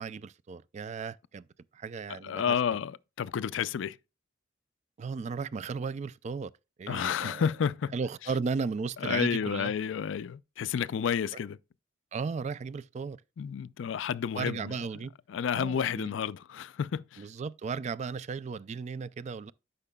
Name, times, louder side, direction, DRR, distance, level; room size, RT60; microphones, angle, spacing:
voice 1, 0.0-1.5 1.7-2.6 5.0-6.5 6.8-7.5 7.9-9.7 12.1-13.2 14.4-15.1 15.5-16.1 17.2-19.5, right 5 dB, 35° right, 0.3 m, -35 dB
voice 2, 2.1-4.0 6.9-7.9 9.0-11.6 13.4-14.8 15.3-17.3, left 7 dB, 70° left, 0.4 m, -31 dB
12.0 x 5.7 x 2.2 m
head